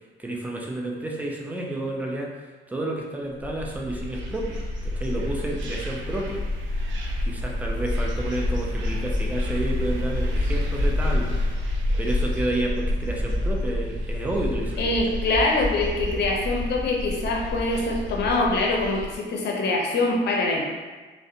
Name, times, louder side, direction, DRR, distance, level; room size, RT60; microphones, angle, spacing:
voice 1, 0.2-2.3 2.7-6.4 7.2-11.4 12.0-14.9, right 1 dB, 10° right, -1 dB, 0.4 m, -30 dB
sound 1, 3.4-14.9, equal, 50° right, 0.8 m, -34 dB
sound 2, 3.5-19.2, left 1 dB, 75° right, 0.5 m, -30 dB
sound 3, 7.5-18.3, left 1 dB, 30° left, 1.0 m, -32 dB
voice 2, 14.8-20.7, left 2 dB, 60° left, -1 dB, 0.5 m, -24 dB
2.4 x 2.1 x 2.6 m, 1.3 s
cardioid pair, 90°, 20 cm